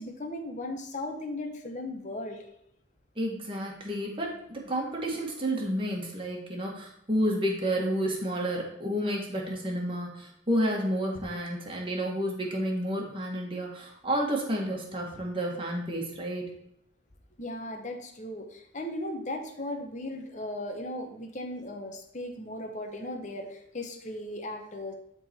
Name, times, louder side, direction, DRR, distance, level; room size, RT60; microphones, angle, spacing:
voice 1, 0.0-2.5 17.4-24.9, left 1 dB, 40° left, 4 dB, 1.2 m, -37 dB
voice 2, 3.2-16.5, equal, 25° right, -1 dB, 1.7 m, -30 dB
11.0 x 4.0 x 4.4 m, 0.75 s
head